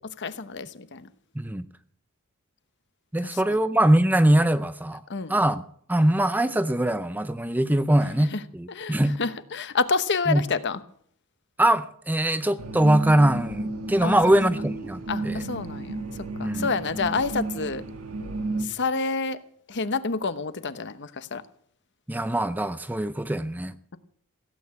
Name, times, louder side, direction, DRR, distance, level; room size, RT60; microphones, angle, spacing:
voice 1, 0.2-1.1 3.2-3.6 5.1-5.4 8.3-8.4 8.7-10.8 14.0-14.2 15.1-16.0 16.4-17.8 18.6-19.4 19.7-21.4, left 4 dB, 55° left, 1.0 m, -28 dB
voice 2, 1.4-1.7 3.1-5.0 5.3-5.6 5.9-9.2 10.3-10.4 11.6-15.4 16.4-16.7 22.1-23.7, right 1 dB, 10° right, 0.5 m, -22 dB
sound 1, 12.6-18.6, right 2 dB, 65° right, 1.7 m, -32 dB
16.5 x 8.8 x 8.4 m
head